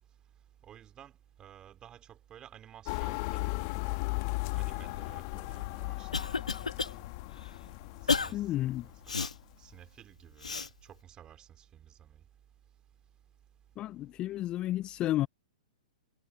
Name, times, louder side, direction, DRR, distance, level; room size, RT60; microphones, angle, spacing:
voice 1, 0.6-4.0 4.6-7.0 8.0-9.3 9.6-12.2, right 10 dB, 25° right, 4.4 m, -54 dB
sound 1, 2.9-9.4, left 29 dB, 40° left, 1.4 m, -36 dB
Cough, 5.5-6.9 7.4-7.5 8.1-8.3 9.1-9.3 10.4-10.7, left 4 dB, 85° left, 1.4 m, -31 dB
voice 2, 8.3-8.9 13.8-15.3, left 14 dB, 25° left, 0.3 m, -32 dB
hypercardioid pair, 115°, 4 cm